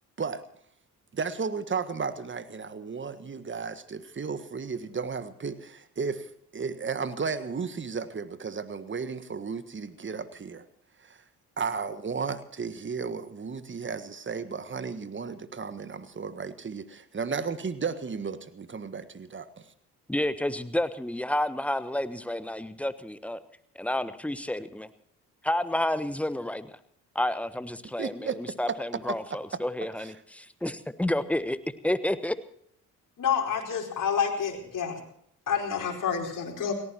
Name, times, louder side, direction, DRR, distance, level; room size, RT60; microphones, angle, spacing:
voice 1, 1.1-10.7 11.0-11.2 11.6-19.7 28.0-28.8 29.1-29.4 30.0-30.1, right 5 dB, 25° right, 13 dB, 1.6 m, -34 dB
voice 2, 20.1-23.4 23.7-24.9 25.4-26.8 27.1-31.6 31.8-32.4, left 1 dB, 5° left, 14 dB, 1.2 m, -30 dB
voice 3, 33.2-35.0 35.5-36.7, left 7 dB, 45° left, 1 dB, 4.7 m, -28 dB
30.0 x 15.0 x 3.0 m, 0.69 s
figure-of-eight pair, 45°, 45 cm